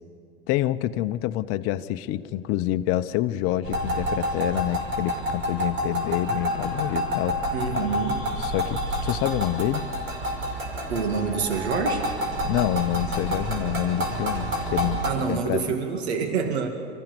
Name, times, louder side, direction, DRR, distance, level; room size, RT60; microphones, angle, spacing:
voice 1, 0.5-7.4 7.7-7.9 8.4-9.8 12.4-15.6, left 14 dB, 45° left, 12 dB, 0.9 m, -27 dB
sound 1, 3.6-15.1, equal, 35° right, 5.5 m, -28 dB
voice 2, 7.5-8.2 10.9-12.1 15.0-16.7, right 5 dB, 75° right, 4 dB, 2.3 m, -27 dB
25.5 x 15.0 x 7.0 m, 2.7 s
hypercardioid pair, 100°, 32 cm